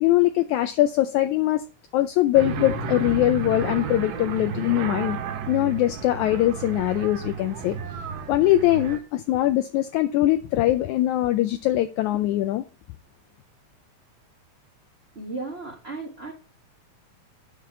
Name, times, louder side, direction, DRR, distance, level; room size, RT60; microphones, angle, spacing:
voice 1, 0.0-1.6 1.9-5.2 5.5-7.8 8.3-12.6, left 14 dB, 80° left, 1.8 m, -22 dB
sound 1, 2.3-9.0, right 6 dB, 80° right, 2.7 m, -32 dB
voice 2, 15.1-16.3, right 3 dB, 35° right, 1.0 m, -35 dB
9.5 x 3.6 x 5.7 m
omnidirectional pair, 3.8 m